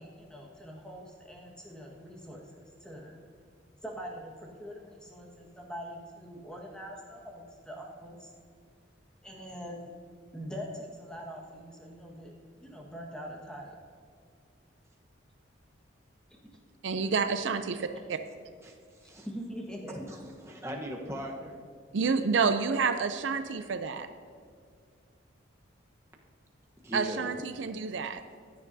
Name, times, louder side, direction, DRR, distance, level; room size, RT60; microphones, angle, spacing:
voice 1, 0.0-3.2 3.8-8.3 9.2-9.9 10.3-12.3 12.6-13.7 19.2-20.1, equal, 5° left, -1 dB, 1.5 m, -43 dB
voice 2, 16.8-18.2 21.9-24.1 26.9-28.2, right 5 dB, 70° right, 9 dB, 0.5 m, -29 dB
voice 3, 18.6-19.3 20.1-21.6 26.8-27.3, equal, 15° right, 0 dB, 1.1 m, -39 dB
15.0 x 9.5 x 2.7 m, 2.2 s
head